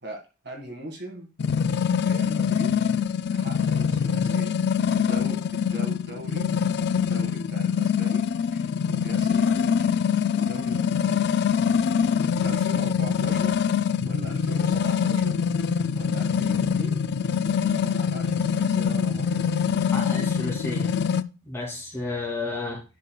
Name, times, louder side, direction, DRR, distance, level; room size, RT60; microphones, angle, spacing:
voice 1, 0.0-1.3 2.0-2.7 3.3-4.6 4.9-6.5 6.9-9.7 10.4-11.3 11.9-12.0 12.4-13.6 14.0-15.4 15.7-17.1 17.6-19.4, right 1 dB, 50° right, 3 dB, 2.0 m, -40 dB
sound 1, 1.4-21.2, left 7 dB, 50° left, 0.3 m, -24 dB
voice 2, 19.8-21.0 21.4-22.8, left 2 dB, 10° left, -2 dB, 2.6 m, -32 dB
10.5 x 6.6 x 2.3 m, 0.31 s
head